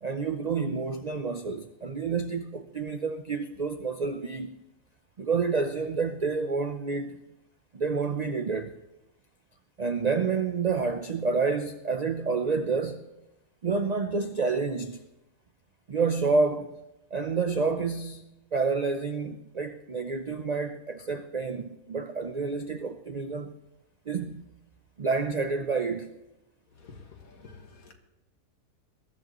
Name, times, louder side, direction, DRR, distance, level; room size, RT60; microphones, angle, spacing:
voice 1, 0.0-4.5 5.2-7.2 7.7-8.7 9.8-13.1 13.6-15.0 15.9-16.7 17.1-23.6 24.1-24.4 25.0-26.2, right 4 dB, 85° right, 0.3 m, -29 dB
voice 2, 26.7-27.9, left 4 dB, 70° left, 2.1 m, -49 dB
21.5 x 13.0 x 3.0 m
omnidirectional pair, 1.6 m